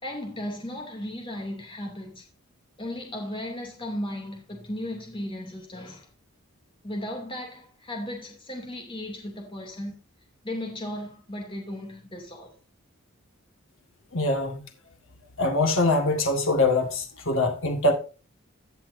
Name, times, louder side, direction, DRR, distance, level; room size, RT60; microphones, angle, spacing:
voice 1, 0.0-2.2 2.8-6.1 6.8-10.0 10.4-12.5, left 1 dB, 25° left, 2.6 m, -35 dB
voice 2, 14.1-14.6 15.4-17.9, left 2 dB, 60° left, 1.7 m, -23 dB
17.0 x 5.9 x 2.6 m
head